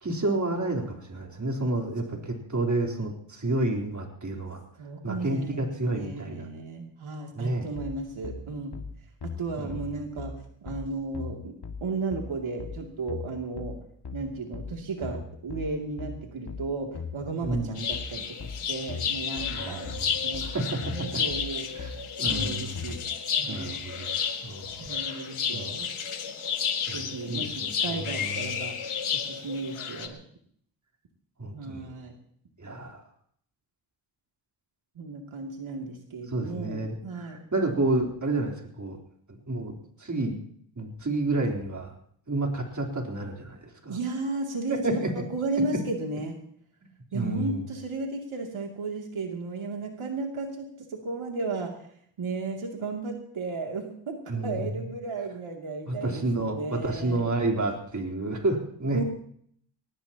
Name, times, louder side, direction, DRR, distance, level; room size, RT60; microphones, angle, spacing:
voice 1, 0.0-4.6 5.0-6.5 7.3-7.7 9.6-9.8 17.4-17.7 19.5-21.2 21.7-21.9 22.2-22.8 23.4-24.1 24.4-25.2 25.5-25.7 26.9-28.5 31.4-31.9 32.6-33.0 36.3-39.0 39.5-40.4 40.8-41.9 42.3-43.6 43.8-44.0 44.7-45.3 47.1-47.6 54.3-54.7 55.9-59.0, right 2 dB, 35° right, 1 dB, 3.8 m, -30 dB
voice 2, 4.8-8.7 9.2-10.3 10.6-11.5 11.8-13.7 14.1-21.7 22.2-23.0 23.4-23.8 24.8-25.9 26.9-30.2 31.5-32.1 35.0-37.4 43.9-46.4 47.1-51.7 52.2-54.2 54.4-57.3 58.9-59.0, right 3 dB, 75° right, 1 dB, 2.8 m, -34 dB
sound 1, 7.8-23.0, left 4 dB, 55° left, 2.1 m, -39 dB
sound 2, 17.8-30.1, left 7 dB, 85° left, 1.9 m, -32 dB
22.5 x 19.5 x 2.9 m, 0.62 s
wide cardioid pair, 90°, 49 cm